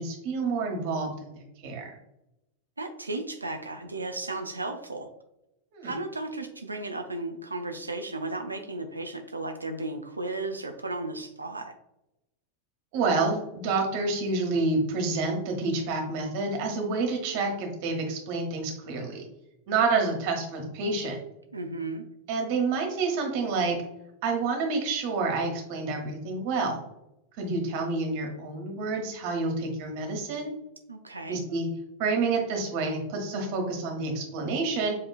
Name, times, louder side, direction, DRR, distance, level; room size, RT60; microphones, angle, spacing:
voice 1, 0.0-1.9 5.7-5.9 12.9-19.2 19.7-21.2 22.3-23.8 24.2-26.8 27.4-30.5 31.3-31.7 32.0-35.0, right 3 dB, 45° right, 2 dB, 1.2 m, -28 dB
voice 2, 2.8-5.1 5.8-11.7 21.5-22.0 30.9-31.4, right 2 dB, 80° right, 5 dB, 0.4 m, -34 dB
7.4 x 2.8 x 2.3 m, 0.87 s
figure-of-eight pair, 90°, 0 cm